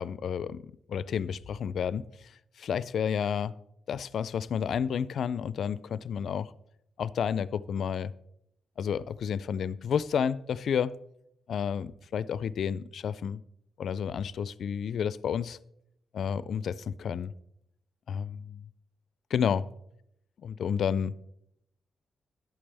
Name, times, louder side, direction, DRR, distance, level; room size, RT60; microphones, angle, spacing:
voice 1, 0.0-2.0 2.6-3.5 3.9-6.5 7.0-8.1 8.8-10.9 11.5-13.4 13.8-15.6 16.1-17.3 18.1-18.7 19.3-19.6 20.4-21.1, left 7 dB, 70° left, 0.3 m, -31 dB
11.5 x 8.7 x 3.4 m
cardioid pair, 95°, 0 cm